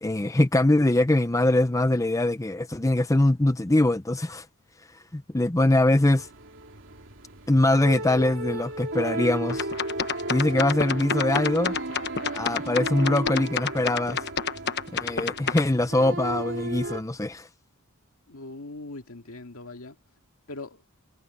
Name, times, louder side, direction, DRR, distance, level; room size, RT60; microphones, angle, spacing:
voice 1, 0.0-4.5 5.1-6.3 7.5-9.7 10.3-11.7 12.3-14.2 15.0-17.5, left 1 dB, 15° left, 0.6 m, -23 dB
sound 1, 6.2-17.0, right 2 dB, 60° right, 3.2 m, -34 dB
sound 2, 9.5-15.6, left 6 dB, 50° left, 1.2 m, -29 dB
voice 2, 18.3-20.0 20.5-20.8, left 2 dB, 70° left, 2.2 m, -40 dB
head